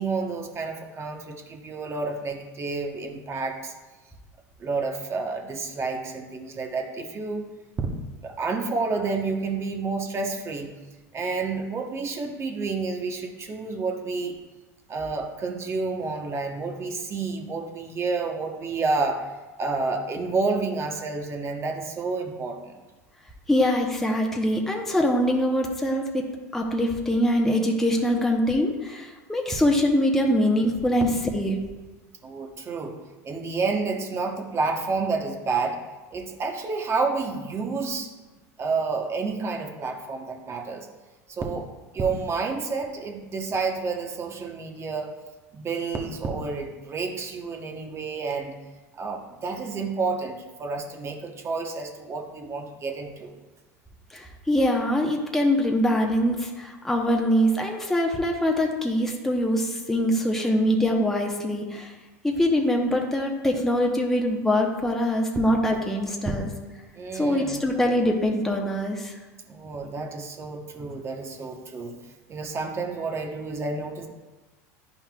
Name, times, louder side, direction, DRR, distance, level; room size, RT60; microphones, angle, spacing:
voice 1, 0.0-3.7 4.6-7.4 7.8-10.7 11.1-14.4 14.9-19.3 19.6-22.8 32.2-32.9 33.2-35.8 36.1-38.1 38.6-40.9 41.3-41.7 41.9-45.1 45.5-48.5 48.9-53.3 66.9-67.6 69.5-71.9 72.3-74.1, right 4 dB, 30° right, 3 dB, 1.0 m, -29 dB
voice 2, 23.5-26.3 26.5-31.6 54.1-61.9 62.2-66.5 67.1-69.1, equal, 5° left, 0 dB, 0.9 m, -23 dB
10.0 x 5.5 x 2.3 m, 1.2 s
hypercardioid pair, 95°, 9 cm